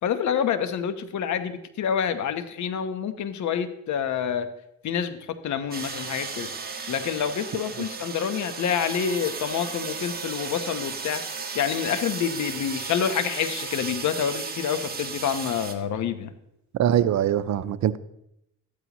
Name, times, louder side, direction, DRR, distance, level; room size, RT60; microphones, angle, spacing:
voice 1, 0.0-4.5 4.8-6.5 6.9-11.2 11.5-16.3, left 8 dB, 70° left, 10 dB, 1.1 m, -27 dB
sound 1, 5.7-15.7, right 5 dB, 30° right, 1.7 m, -35 dB
voice 2, 16.8-18.0, right 10 dB, 65° right, 14 dB, 0.7 m, -22 dB
14.0 x 12.5 x 3.1 m, 0.80 s
cardioid pair, 90°, 30 cm